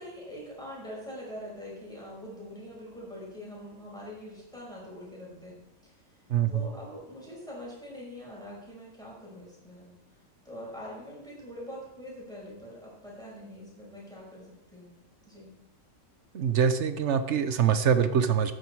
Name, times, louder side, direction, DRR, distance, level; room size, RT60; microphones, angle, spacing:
voice 1, 0.0-10.0 10.4-14.9 15.3-15.5, equal, ahead, -5 dB, 5.8 m, -44 dB
voice 2, 6.3-6.6 16.3-18.5, right 7 dB, 50° right, 10 dB, 0.9 m, -24 dB
13.5 x 10.0 x 4.7 m, 0.86 s
omnidirectional pair, 1.9 m